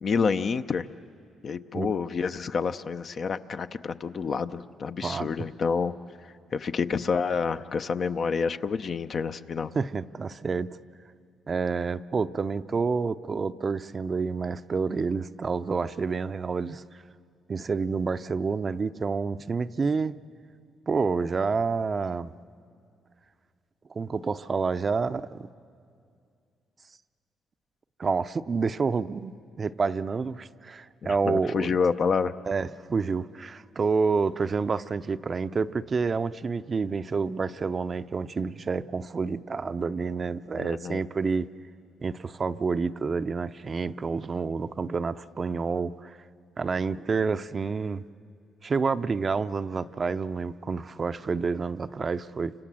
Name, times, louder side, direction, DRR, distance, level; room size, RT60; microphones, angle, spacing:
voice 1, 0.0-0.9 1.4-5.9 6.5-9.7 31.0-32.3 40.5-41.0, left 5 dB, 50° left, 10 dB, 0.7 m, -28 dB
voice 2, 9.7-10.7 11.5-16.8 17.5-20.1 20.9-22.3 23.9-25.4 28.0-31.8 32.5-41.5 42.0-46.2 46.6-48.0 48.6-52.5, right 4 dB, 35° right, 12 dB, 0.6 m, -28 dB
29.5 x 26.0 x 7.6 m, 2.4 s
cardioid pair, 90°, 0 cm